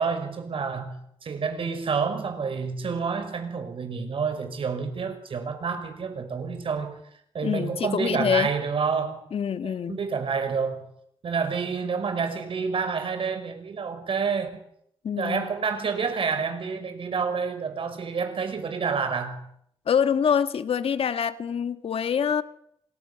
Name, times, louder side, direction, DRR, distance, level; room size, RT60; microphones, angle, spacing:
voice 1, 0.0-7.0 7.3-9.2 9.6-10.9 11.2-14.6 15.2-19.5, right 5 dB, 65° right, 6.0 m, -28 dB
voice 2, 7.4-8.5 9.3-10.0 15.0-15.5 19.9-22.4, left 7 dB, 75° left, 1.9 m, -25 dB
29.5 x 26.5 x 7.2 m
wide cardioid pair, 100°, 10 cm